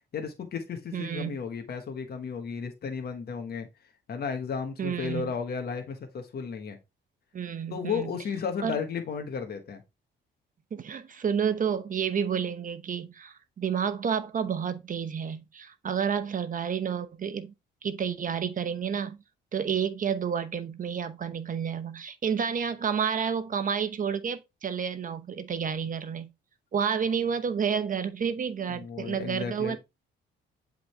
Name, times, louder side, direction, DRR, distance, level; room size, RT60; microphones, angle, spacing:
voice 1, 0.1-3.7 4.1-6.8 7.7-9.8 28.7-29.8, left 6 dB, 55° left, 1.3 m, -34 dB
voice 2, 0.9-1.4 4.8-5.3 7.3-8.1 8.6-8.8 10.7-17.5 17.8-19.2 19.5-26.3 26.7-29.8, right 7 dB, 40° right, 0.9 m, -30 dB
7.7 x 3.9 x 3.3 m
cardioid pair, 90°, 20 cm